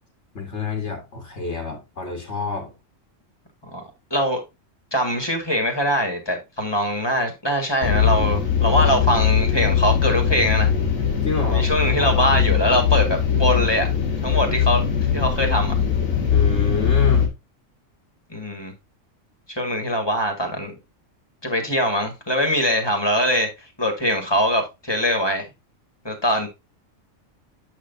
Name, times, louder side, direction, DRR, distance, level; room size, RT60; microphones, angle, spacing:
voice 1, 0.3-2.7 11.2-11.7 12.0-12.2 16.3-17.3, left 4 dB, 60° left, 1.9 m, -28 dB
voice 2, 4.1-4.4 4.9-10.7 11.5-13.9 14.2-14.8 15.1-15.7 18.3-18.7 19.5-20.8 21.4-23.5 23.8-25.5 26.0-26.5, equal, 20° left, 1.7 m, -22 dB
sound 1, 7.8-17.3, left 8 dB, 90° left, 2.0 m, -20 dB
8.0 x 6.0 x 2.6 m
omnidirectional pair, 1.4 m